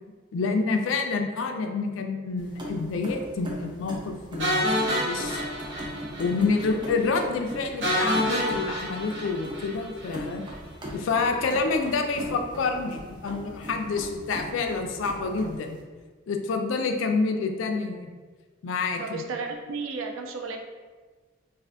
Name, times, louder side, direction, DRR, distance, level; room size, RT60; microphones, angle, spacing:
voice 1, 0.3-5.4 6.2-10.4 10.9-15.8 16.3-18.1 18.6-19.2, left 4 dB, 75° left, 5 dB, 0.3 m, -28 dB
sound 1, 2.4-15.8, equal, 25° right, 0.4 m, -39 dB
sound 2, 4.4-6.3 6.6-6.7 7.0-7.1 7.8-10.1, equal, 65° right, 1.2 m, -28 dB
voice 2, 19.0-20.6, right 4 dB, 90° right, 4 dB, 0.4 m, -33 dB
2.5 x 2.5 x 3.3 m, 1.4 s
head